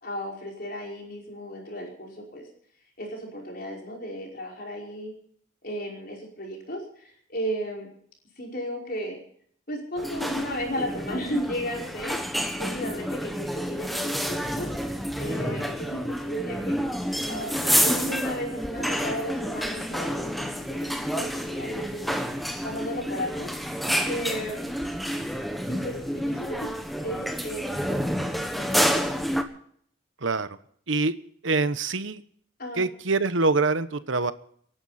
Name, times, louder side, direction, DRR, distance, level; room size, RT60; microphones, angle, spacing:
voice 1, 0.0-2.4 3.0-5.1 5.6-7.9 8.4-9.2 9.7-16.8 17.2-20.5 20.8-22.2 22.6-23.5 24.1-24.7 25.7-26.7 27.0-28.1 28.4-28.7 32.6-32.8, equal, 45° left, -1 dB, 5.3 m, -34 dB
sound 1, 10.0-29.4, equal, ahead, 1.3 m, -29 dB
voice 2, 30.2-30.6 30.9-31.1 31.4-32.2 32.8-34.3, right 3 dB, 70° right, 13 dB, 1.0 m, -25 dB
28.0 x 11.5 x 4.3 m, 0.63 s
head